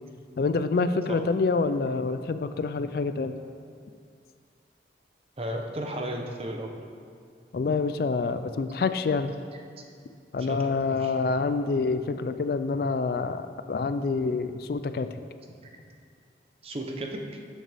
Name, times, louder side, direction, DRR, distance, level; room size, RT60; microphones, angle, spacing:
voice 1, 0.4-3.3 7.5-9.3 10.3-15.1, left 4 dB, 55° left, 10 dB, 0.3 m, -27 dB
voice 2, 5.4-6.7 10.4-10.7 11.0-11.2 16.6-17.2, right 1 dB, 35° right, 2 dB, 0.8 m, -34 dB
12.0 x 6.5 x 3.5 m, 2.2 s
head